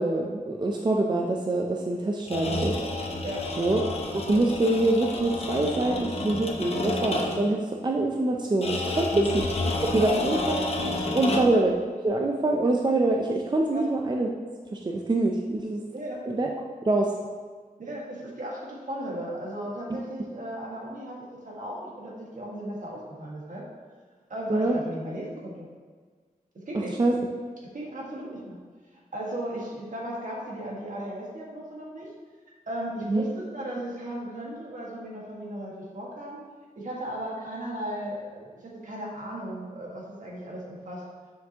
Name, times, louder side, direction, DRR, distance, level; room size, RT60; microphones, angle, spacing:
voice 1, 0.0-2.7 3.6-3.8 4.1-9.4 9.8-10.6 11.1-14.3 14.7-15.8 16.3-16.5 16.9-17.1 24.5-24.8 27.0-27.2 33.1-33.2, right 2 dB, 30° right, 1 dB, 0.5 m, -25 dB
sound 1, 2.2-7.6 8.6-11.7, left 2 dB, 45° left, 0.8 m, -30 dB
voice 2, 10.0-10.5 11.1-11.5 13.7-13.8 15.9-16.2 17.8-23.6 24.3-25.7 26.7-26.9 27.7-28.6 28.9-32.1 32.7-36.4 36.7-41.0, right 1 dB, 60° right, -4 dB, 1.6 m, -36 dB
7.2 x 5.9 x 2.9 m, 1.5 s
wide cardioid pair, 110°, 15 cm